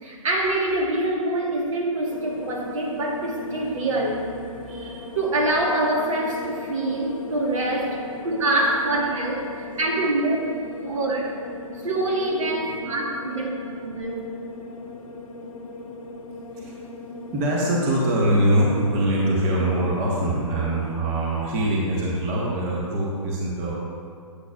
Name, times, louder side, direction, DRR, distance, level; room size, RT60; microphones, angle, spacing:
voice 1, 0.0-4.3 4.7-10.4 10.8-11.3 11.8-14.3, right 2 dB, 60° right, -1 dB, 1.3 m, -25 dB
sound 1, 2.1-20.9, left 2 dB, 65° left, 0.8 m, -38 dB
voice 2, 17.3-23.7, right 1 dB, 25° right, -4 dB, 1.1 m, -23 dB
8.3 x 8.1 x 2.3 m, 2.2 s
figure-of-eight pair, 130°, 18 cm